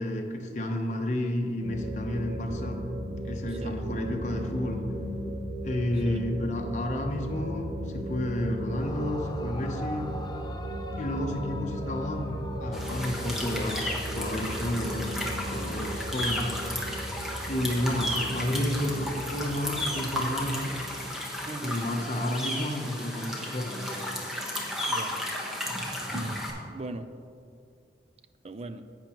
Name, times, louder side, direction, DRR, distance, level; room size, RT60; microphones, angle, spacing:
voice 1, 0.0-2.8 3.2-4.8 5.6-10.1 11.0-16.6 17.5-20.9 21.6-24.1, left 1 dB, 45° left, 2 dB, 0.9 m, -31 dB
sound 1, 1.6-21.1, equal, 80° right, 1.8 m, -36 dB
Yell / Screaming, 8.7-13.6, left 1 dB, 25° left, 0.5 m, -43 dB
sound 2, 12.7-26.5, left 1 dB, ahead, 1.1 m, -34 dB
voice 2, 21.5-21.8 24.9-25.2 26.1-27.1 28.4-28.8, right 2 dB, 35° right, 10 dB, 0.4 m, -38 dB
10.5 x 8.7 x 3.0 m, 2.4 s
head